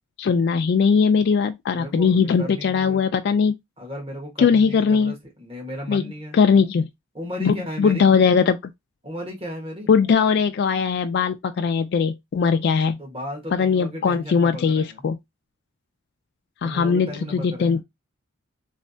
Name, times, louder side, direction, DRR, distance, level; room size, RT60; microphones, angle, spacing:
voice 1, 0.2-3.5 4.4-5.1 5.9-6.0 6.3-6.9 7.4-8.6 9.9-13.0 13.5-15.2 16.6-17.8, left 6 dB, 55° left, 0.3 m, -20 dB
voice 2, 1.7-3.0 3.8-6.4 7.1-8.2 9.0-9.9 12.9-15.1 16.6-17.8, equal, 30° right, 1.3 m, -35 dB
3.2 x 3.1 x 2.7 m
head